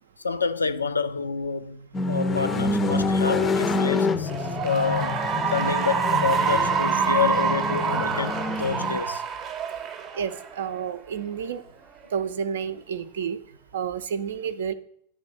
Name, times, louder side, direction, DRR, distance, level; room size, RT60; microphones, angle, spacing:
voice 1, 0.2-9.2, left 5 dB, 75° left, 0.4 m, -28 dB
sound 1, 1.9-9.0, left 3 dB, 20° left, 0.5 m, -27 dB
Cheering / Applause, 4.1-10.8, right 6 dB, 35° right, 0.8 m, -27 dB
voice 2, 10.1-11.6 12.1-13.4 13.7-14.7, right 7 dB, 60° right, 0.5 m, -30 dB
9.4 x 3.2 x 6.3 m
figure-of-eight pair, 90°, 0 cm